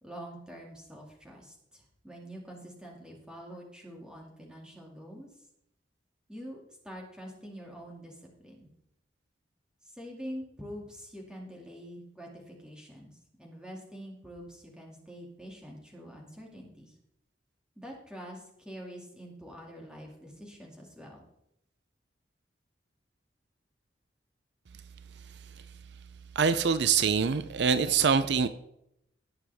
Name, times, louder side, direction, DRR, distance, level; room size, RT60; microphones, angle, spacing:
voice 1, 0.0-5.3 6.3-6.6 6.8-8.7 9.8-16.9 17.8-21.2, equal, 5° right, -1 dB, 2.3 m, -45 dB
voice 2, 26.4-28.5, right 6 dB, 65° right, 12 dB, 0.5 m, -24 dB
18.5 x 7.1 x 3.5 m, 0.79 s
head